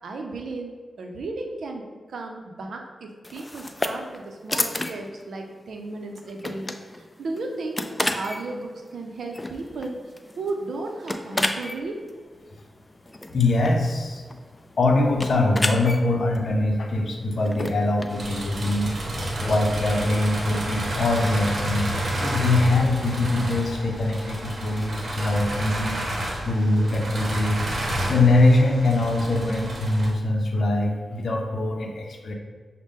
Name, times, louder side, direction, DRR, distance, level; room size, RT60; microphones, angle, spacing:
voice 1, 0.0-6.7 7.2-10.0 10.4-12.0, right 2 dB, 80° right, 3 dB, 0.6 m, -34 dB
sound 1, 3.2-19.7, left 1 dB, 25° left, 0.4 m, -33 dB
voice 2, 13.3-14.2 14.8-19.0 19.4-21.9 22.2-26.0 26.4-27.6 28.0-32.3, left 2 dB, 70° left, 2 dB, 0.6 m, -22 dB
sound 2, 18.1-30.1, right 1 dB, 60° right, 0.9 m, -30 dB
6.3 x 2.1 x 3.6 m, 1.5 s
cardioid pair, 55°, 0 cm